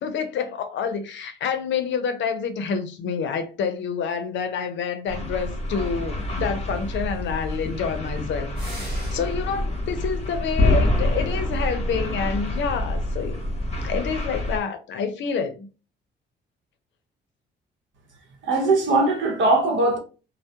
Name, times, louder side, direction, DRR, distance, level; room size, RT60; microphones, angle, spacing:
voice 1, 0.0-13.4 13.8-15.7, left 6 dB, 65° left, 0.5 m, -28 dB
sound 1, 5.1-14.6, left 1 dB, 35° left, 0.7 m, -26 dB
sound 2, 8.6-9.6, right 1 dB, 50° right, 1.2 m, -40 dB
voice 2, 18.4-20.0, right 2 dB, 70° right, 0.8 m, -20 dB
2.3 x 2.1 x 2.6 m
cardioid pair, 90°, 20 cm